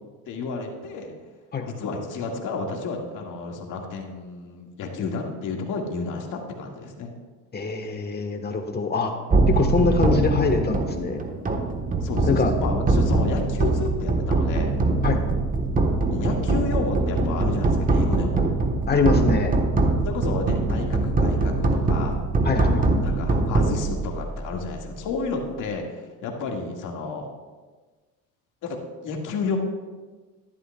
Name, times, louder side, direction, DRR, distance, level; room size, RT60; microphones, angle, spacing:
voice 1, 0.3-1.1 1.8-7.1 12.0-14.7 16.1-18.4 20.1-22.2 23.0-27.3 28.6-28.8 29.0-29.6, left 4 dB, 60° left, 1 dB, 1.9 m, -31 dB
voice 2, 7.5-9.1 9.5-11.2 12.3-12.5 15.0-15.2 18.9-19.6 22.4-23.0, left 4 dB, 30° left, 4 dB, 1.3 m, -24 dB
sound 1, 9.3-24.6, right 2 dB, 25° right, 1.2 m, -23 dB
13.0 x 11.0 x 2.3 m, 1.3 s
cardioid pair, 105°, 35 cm